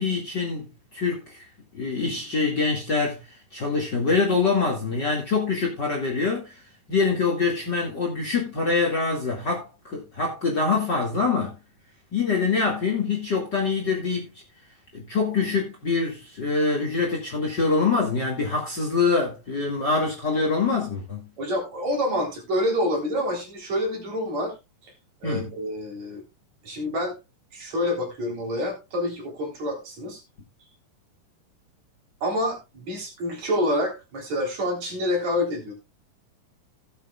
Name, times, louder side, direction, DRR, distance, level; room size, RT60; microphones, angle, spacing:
voice 1, 0.0-1.5 1.7-3.2 3.5-6.6 6.9-11.6 12.1-14.3 14.9-21.3 25.2-25.5, left 4 dB, 35° left, 2.3 m, -25 dB
voice 2, 21.4-24.5 24.8-24.9 25.2-26.2 26.6-27.1 27.5-30.2 32.2-35.7, left 1 dB, 50° right, 4.7 m, -27 dB
17.5 x 8.1 x 2.4 m
omnidirectional pair, 4.1 m